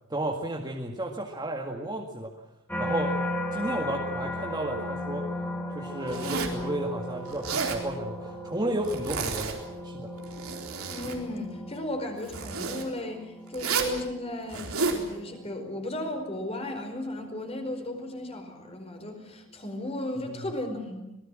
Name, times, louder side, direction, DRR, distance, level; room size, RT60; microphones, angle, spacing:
voice 1, 0.1-2.3 2.8-3.2 3.5-5.4 5.7-9.6 9.8-10.1 20.2-20.5, right 1 dB, 20° right, 0 dB, 2.0 m, -33 dB
sound 1, 2.7-17.9 18.4-18.8, left 1 dB, 10° left, 3.8 m, -37 dB
Zipper (clothing), 6.1-6.6 7.3-7.8 8.8-9.6 10.2-11.2 12.3-12.8 13.5-14.0 14.5-15.0, right 4 dB, 90° right, 4.1 m, -31 dB
voice 2, 10.9-21.0, left 1 dB, 30° left, 5 dB, 4.9 m, -35 dB
26.0 x 19.5 x 7.7 m, 0.90 s
head